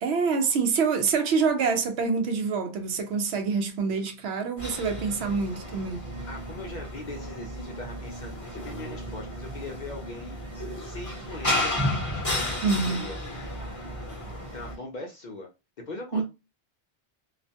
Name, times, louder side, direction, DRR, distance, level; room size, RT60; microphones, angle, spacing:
voice 1, 0.0-6.1 12.6-13.0 16.1-16.2, right 5 dB, 75° right, 0.8 m, -26 dB
sound 1, 4.6-14.8, left 1 dB, 20° left, 0.7 m, -33 dB
voice 2, 6.3-11.8 12.1-12.6 12.8-13.2 14.5-15.5 15.9-16.2, left 3 dB, 55° left, 0.5 m, -40 dB
2.4 x 2.1 x 2.7 m
omnidirectional pair, 1.1 m